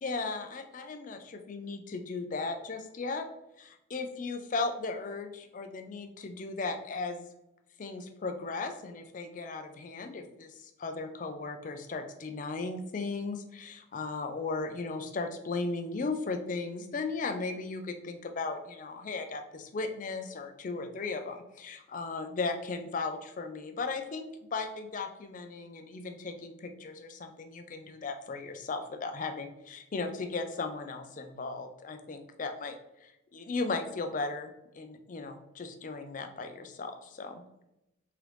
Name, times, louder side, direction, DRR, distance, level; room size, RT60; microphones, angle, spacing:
voice 1, 0.0-3.3 3.6-7.3 7.8-37.4, left 3 dB, 40° left, 7 dB, 0.4 m, -36 dB
3.7 x 3.2 x 3.1 m, 0.87 s
head